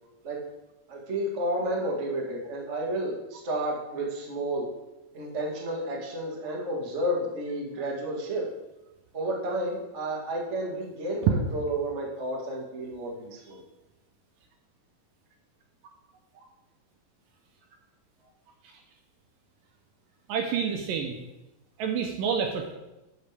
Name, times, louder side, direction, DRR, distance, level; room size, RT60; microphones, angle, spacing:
voice 1, 0.9-4.7 5.1-8.5 9.1-13.6, right 1 dB, 60° right, -2 dB, 0.7 m, -31 dB
voice 2, 20.3-21.2 21.8-22.7, right 7 dB, 80° right, 3 dB, 2.0 m, -27 dB
12.0 x 6.5 x 3.4 m, 1.0 s
omnidirectional pair, 4.5 m